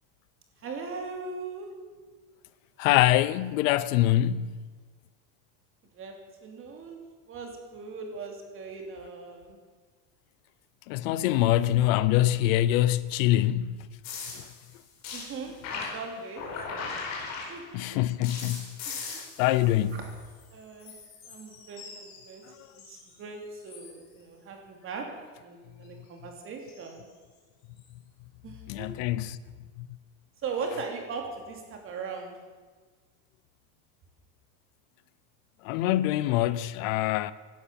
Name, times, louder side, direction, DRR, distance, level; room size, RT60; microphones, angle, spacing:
voice 1, 0.6-1.7 5.9-6.1 6.4-7.0 7.3-9.6 15.1-16.5 17.5-18.0 18.8-19.2 20.0-20.1 20.5-20.9 21.3-22.4 22.7-25.1 25.4-27.0 28.4-28.9 30.4-32.4, right 4 dB, 30° right, 3.1 m, -39 dB
voice 2, 2.8-4.5 10.9-13.8 14.3-14.5 17.7-20.0 28.7-29.4 30.7-30.8 35.6-37.3, left 14 dB, 70° left, 0.8 m, -25 dB
sound 1, 14.0-17.9 18.2-20.5 20.8-23.1 23.5-24.0 26.7-26.9 27.8-27.9, left 4 dB, 40° left, 4.8 m, -40 dB
17.0 x 11.5 x 7.0 m
cardioid pair, 160°, 41 cm